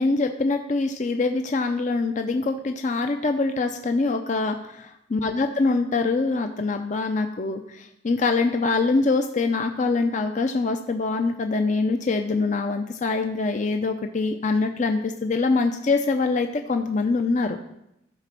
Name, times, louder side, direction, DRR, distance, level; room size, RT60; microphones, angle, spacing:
voice 1, 0.0-17.6, left 3 dB, 40° left, 6 dB, 0.5 m, -24 dB
13.0 x 5.0 x 6.0 m, 0.83 s
head